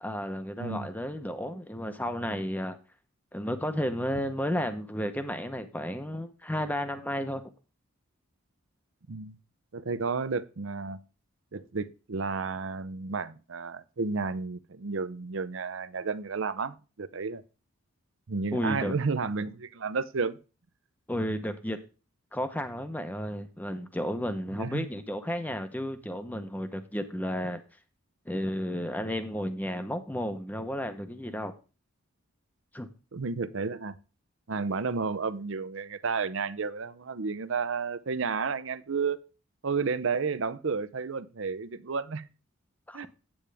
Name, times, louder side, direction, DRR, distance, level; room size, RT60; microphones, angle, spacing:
voice 1, 0.0-2.8 3.3-7.4 18.5-18.9 21.1-21.8 22.3-27.6 28.3-31.5 32.7-32.9 42.9-43.1, equal, 10° left, 0.8 m, -32 dB
voice 2, 9.7-11.0 11.5-17.4 18.3-20.4 24.6-24.8 33.1-34.0 34.5-39.2 39.6-42.2 42.9-43.1, right 4 dB, 65° right, 0.6 m, -32 dB
8.8 x 8.7 x 3.4 m
head